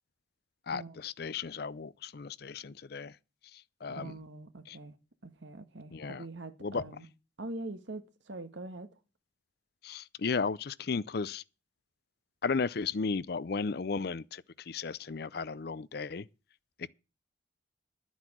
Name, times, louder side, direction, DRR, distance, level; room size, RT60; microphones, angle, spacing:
voice 1, 0.7-3.2 3.5-4.2 4.7-4.8 5.9-6.2 6.6-6.8 9.8-11.4 12.4-16.3 16.8-16.9, left 5 dB, 55° left, 0.5 m, -35 dB
voice 2, 4.0-5.0 5.2-7.0 7.4-8.9, right 2 dB, 85° right, 1.5 m, -43 dB
12.0 x 8.1 x 6.2 m
head